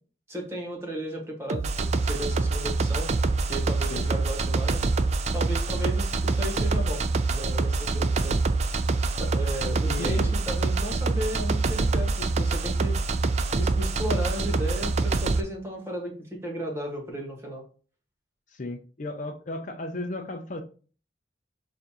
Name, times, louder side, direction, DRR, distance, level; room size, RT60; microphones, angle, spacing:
voice 1, 0.3-3.1 3.5-4.9 5.3-7.0 7.3-8.4 9.2-12.9 13.6-17.6, equal, 15° right, 0 dB, 1.5 m, -34 dB
sound 1, 1.5-15.4, right 3 dB, 40° right, 0.4 m, -25 dB
voice 2, 9.8-10.4 18.5-20.6, left 2 dB, 45° left, 5 dB, 0.5 m, -34 dB
6.6 x 2.6 x 2.9 m, 0.39 s
head